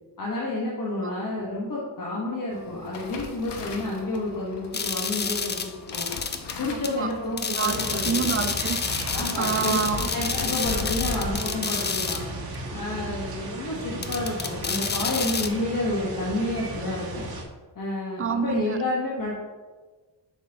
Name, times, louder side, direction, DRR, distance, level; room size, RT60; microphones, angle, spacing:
voice 1, 0.2-6.1 6.6-8.2 9.1-12.2 12.7-17.2 17.7-19.3, left 2 dB, 50° left, -5 dB, 1.4 m, -30 dB
sound 1, 2.5-13.9 14.2-14.5 14.8-15.3 15.6-15.7, left 4 dB, 75° left, 0.9 m, -39 dB
sound 2, 4.7-6.6 6.8-6.9 7.4-12.3 12.5-12.6 14.0-15.5, left 5 dB, 25° left, 0.4 m, -29 dB
voice 2, 6.6-7.1 7.5-8.9 9.4-10.1 18.2-18.8, right 6 dB, 35° right, 9 dB, 0.5 m, -28 dB
sound 3, 7.7-17.4, right 2 dB, 60° right, 1.5 m, -36 dB
7.0 x 6.5 x 2.9 m, 1.4 s
wide cardioid pair, 125°, 41 cm